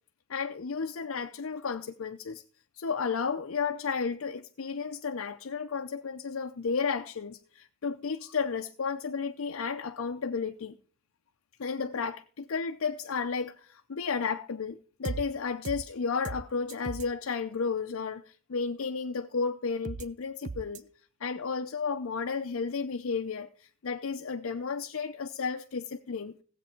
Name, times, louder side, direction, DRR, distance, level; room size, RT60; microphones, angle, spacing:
voice 1, 0.3-2.4 2.8-10.8 11.6-20.9 21.2-26.4, left 5 dB, 75° left, 0.6 m, -33 dB
sound 1, 15.0-15.2 15.6-15.8 16.2-16.4 16.7-17.0 19.8-20.0 20.4-20.8, right 3 dB, 35° right, 0.5 m, -36 dB
16.0 x 8.0 x 4.4 m
head